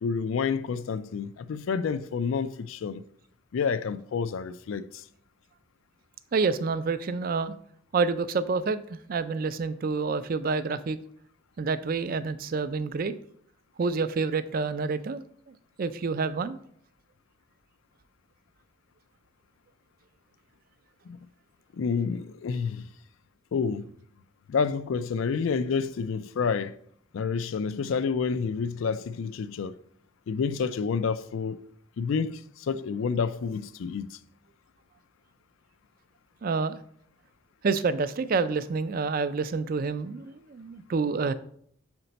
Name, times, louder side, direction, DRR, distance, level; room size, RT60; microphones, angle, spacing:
voice 1, 0.0-3.0 3.5-5.0 21.1-21.2 21.7-22.8 23.5-23.8 24.5-26.7 27.1-29.7 30.3-31.6 32.0-34.2, left 5 dB, 75° left, 0.4 m, -29 dB
voice 2, 6.3-7.5 7.9-11.0 11.6-13.1 13.8-15.2 15.8-16.6 36.4-36.8 37.6-41.3, right 4 dB, 45° right, 0.4 m, -28 dB
6.6 x 4.4 x 4.0 m
head